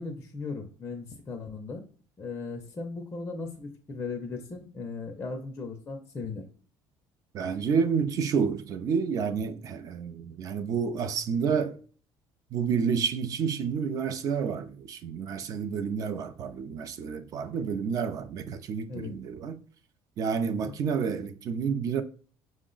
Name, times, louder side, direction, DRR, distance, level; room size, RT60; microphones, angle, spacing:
voice 1, 0.0-1.8 2.2-6.4 18.9-19.1 20.4-20.7, left 4 dB, 20° left, 0.5 m, -37 dB
voice 2, 7.3-11.8 12.5-19.6 20.2-22.0, right 6 dB, 40° right, 0.4 m, -29 dB
5.9 x 2.1 x 3.7 m
cardioid pair, 170°, 10 cm